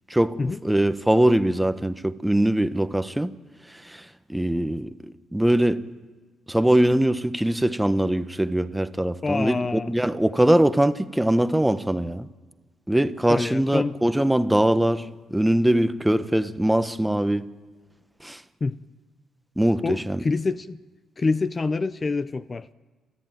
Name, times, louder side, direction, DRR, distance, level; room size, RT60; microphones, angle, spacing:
voice 1, 0.1-3.3 3.7-5.8 6.5-12.3 12.9-17.5 18.2-18.4 19.6-20.2, right 1 dB, 5° right, 1.0 m, -22 dB
voice 2, 9.2-9.9 13.3-14.0 18.6-18.8 19.8-20.8 21.2-22.7, left 3 dB, 30° left, 0.6 m, -26 dB
29.0 x 14.0 x 9.2 m
cardioid pair, 90°, 0 cm